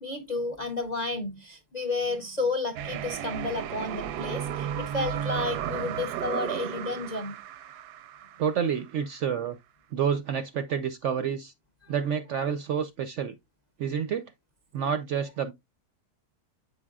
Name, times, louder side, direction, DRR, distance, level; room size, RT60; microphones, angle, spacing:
voice 1, 0.0-7.4 11.8-11.9, left 3 dB, 50° left, 0.5 m, -32 dB
sound 1, 2.8-8.7, right 10 dB, 90° right, 1.2 m, -34 dB
voice 2, 8.4-9.6 9.9-11.5 11.9-13.3 13.8-14.3 14.7-15.5, right 7 dB, 70° right, 0.7 m, -29 dB
8.2 x 5.2 x 2.3 m
omnidirectional pair, 1.7 m